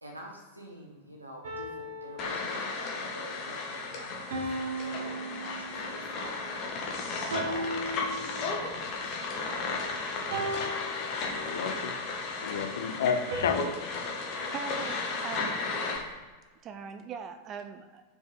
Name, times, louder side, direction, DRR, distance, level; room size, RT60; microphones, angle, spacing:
voice 1, 0.0-9.6 10.2-10.8, equal, 80° right, 0 dB, 1.4 m, -47 dB
sound 1, 1.4-2.9 4.3-6.1 7.3-8.8 10.3-11.8 13.3-15.6, right 1 dB, 60° right, 1.1 m, -38 dB
sound 2, 2.2-16.0, left 4 dB, 40° left, 1.4 m, -34 dB
voice 2, 11.2-11.9 12.4-13.7, left 6 dB, 60° left, 6 dB, 0.7 m, -31 dB
voice 3, 14.5-15.7 16.6-18.0, right 6 dB, 30° right, 8 dB, 0.5 m, -41 dB
6.2 x 5.0 x 3.9 m, 1.3 s
figure-of-eight pair, 90°, 0 cm